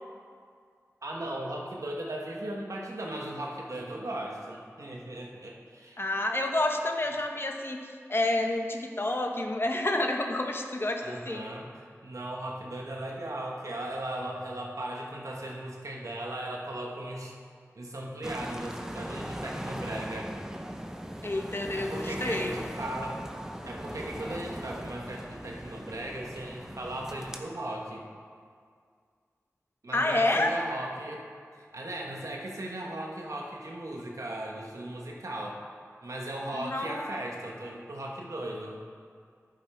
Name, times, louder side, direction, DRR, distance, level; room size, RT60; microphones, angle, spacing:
voice 1, 1.0-6.0 11.0-17.3 17.7-20.3 21.7-23.2 23.6-28.1 29.8-31.2 31.6-35.6 36.0-38.8, right 1 dB, 75° right, -1 dB, 1.2 m, -37 dB
voice 2, 6.0-7.8 8.1-11.4 21.2-22.5 29.9-30.5 36.5-37.2, left 2 dB, 45° left, 3 dB, 1.0 m, -29 dB
sound 1, 18.2-27.4, equal, 10° right, 0.8 m, -39 dB
11.0 x 8.8 x 3.5 m, 2.1 s
wide cardioid pair, 50°, 6 cm